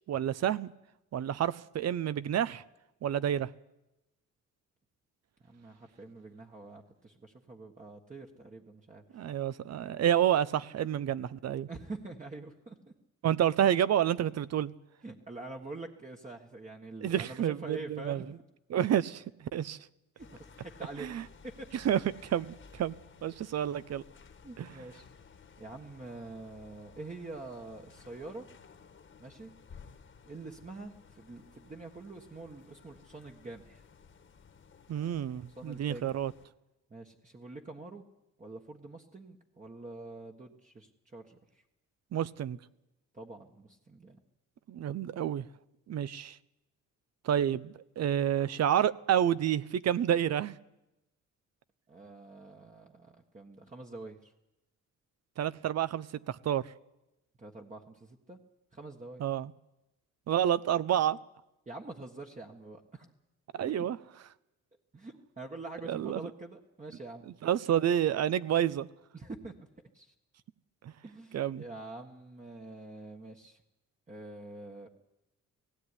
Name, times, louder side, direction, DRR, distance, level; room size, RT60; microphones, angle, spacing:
voice 1, 0.1-0.7 1.1-2.6 3.0-3.5 9.1-11.7 13.2-14.7 17.0-18.2 18.7-19.8 21.0-21.2 21.8-22.0 22.3-22.9 23.2-24.0 24.6-24.7 34.9-36.3 42.1-42.6 44.7-45.4 45.9-46.4 47.2-50.6 55.4-56.6 59.2-59.5 60.3-61.2 63.5-64.0 65.9-66.2 67.4-68.9 70.8-70.9 71.3-71.6, right 10 dB, 55° right, 0.8 m, -29 dB
voice 2, 5.4-9.3 9.7-9.9 11.7-12.9 15.0-18.2 20.2-20.3 20.6-21.1 21.4-21.7 24.4-25.1 25.6-28.5 29.2-29.5 30.2-33.8 35.6-36.1 36.9-38.0 38.4-41.6 43.1-44.2 51.9-54.3 57.4-58.4 58.7-59.2 61.6-63.1 63.6-63.9 64.9-67.3 69.1-69.5 69.9-70.1 71.0-73.6 74.1-74.9, right 2 dB, 25° right, 1.6 m, -46 dB
sound 1, 20.2-36.5, left 6 dB, 40° left, 1.6 m, -56 dB
17.0 x 16.5 x 9.9 m
cardioid pair, 90°, 30 cm